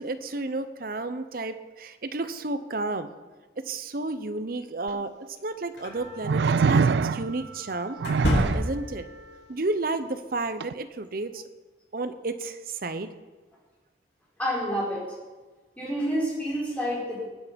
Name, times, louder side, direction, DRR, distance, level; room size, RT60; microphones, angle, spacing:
voice 1, 0.0-3.1 3.6-8.0 8.5-9.0 9.5-11.4 11.9-13.1, right 2 dB, 50° right, 11 dB, 0.8 m, -32 dB
sound 1, 4.9-5.0 6.2-7.4 8.0-8.7 10.6-10.7, right 5 dB, 65° right, 0.3 m, -23 dB
sound 2, 5.8-5.9 8.0-9.0, equal, 70° left, 3.1 m, -26 dB
Wind instrument woodwind instrument, 5.8-9.5, right 3 dB, 85° right, 5.8 m, -48 dB
voice 2, 14.4-15.0 15.8-17.2, equal, 10° left, -6 dB, 4.8 m, -28 dB
19.0 x 8.5 x 5.2 m, 1.3 s
head